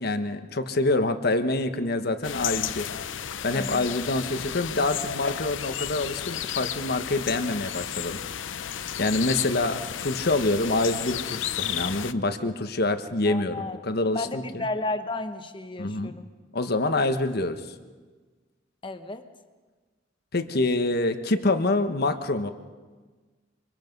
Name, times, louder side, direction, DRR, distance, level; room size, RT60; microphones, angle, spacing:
voice 1, 0.0-2.9 3.4-8.2 9.0-14.6 15.8-16.1 16.5-17.6 20.3-22.5, left 2 dB, 55° left, 9 dB, 1.3 m, -26 dB
sound 1, 2.2-12.1, left 9 dB, 85° left, 0.7 m, -33 dB
voice 2, 3.5-4.0 13.2-13.8 14.1-16.3 18.8-19.3, left 2 dB, 25° left, 8 dB, 1.3 m, -33 dB
25.0 x 25.0 x 5.4 m, 1.4 s
head